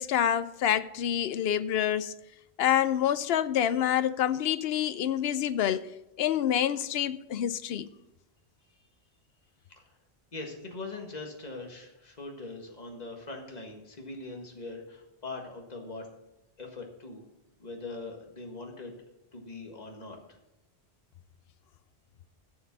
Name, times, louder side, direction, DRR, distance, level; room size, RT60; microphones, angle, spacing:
voice 1, 0.0-2.1 2.6-5.9 6.2-7.9, left 10 dB, 70° left, 0.8 m, -27 dB
voice 2, 10.3-16.1 16.6-17.2 17.6-19.0 19.3-20.4, left 3 dB, 40° left, 1.8 m, -41 dB
11.5 x 7.4 x 6.0 m
omnidirectional pair, 1.1 m